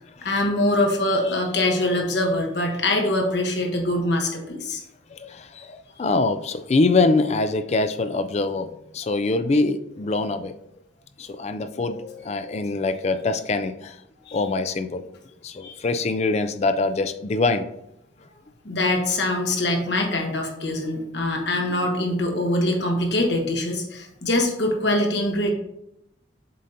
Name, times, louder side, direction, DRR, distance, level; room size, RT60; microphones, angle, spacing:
voice 1, 0.2-4.8 14.2-14.4 15.6-15.7 18.6-25.5, left 1 dB, 65° left, 2 dB, 1.2 m, -23 dB
voice 2, 5.1-10.5 11.2-14.0 14.3-15.1 15.4-17.7, left 3 dB, 35° left, 10 dB, 0.4 m, -24 dB
7.5 x 2.8 x 5.0 m, 0.82 s
head